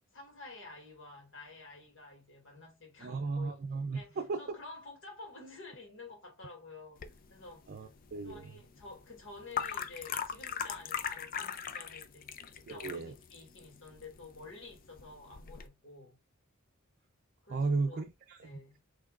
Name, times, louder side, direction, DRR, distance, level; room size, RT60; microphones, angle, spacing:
voice 1, 0.1-3.6 3.9-7.9 8.2-16.2 17.4-18.1 18.4-18.8, left 3 dB, 65° left, 2.4 m, -51 dB
voice 2, 3.0-4.4 7.7-8.5 12.7-13.1 17.5-18.5, right 3 dB, 50° right, 0.5 m, -35 dB
sound 1, 7.0-15.7, left 7 dB, 40° left, 0.4 m, -41 dB
5.8 x 3.3 x 2.4 m
head